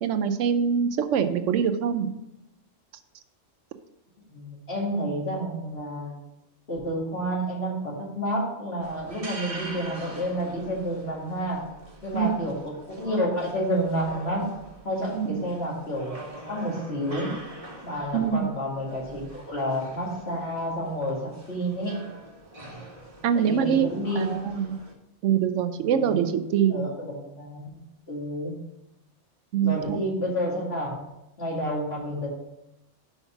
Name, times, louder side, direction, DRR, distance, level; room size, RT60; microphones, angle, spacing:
voice 1, 0.0-2.1 12.1-12.4 15.1-15.3 18.1-18.5 23.2-23.9 24.2-24.8 25.2-26.9 29.5-30.0, right 8 dB, 75° right, 9 dB, 0.9 m, -24 dB
voice 2, 4.3-6.2 6.7-11.6 12.0-14.5 14.8-16.2 16.5-17.3 17.8-22.0 23.3-24.3 25.9-27.7 28.1-28.6 29.6-30.9 31.4-32.3, equal, 55° left, -3 dB, 2.3 m, -30 dB
sound 1, 8.8-24.9, right 2 dB, 30° right, 1.1 m, -44 dB
5.8 x 5.6 x 5.7 m, 0.89 s
omnidirectional pair, 1.3 m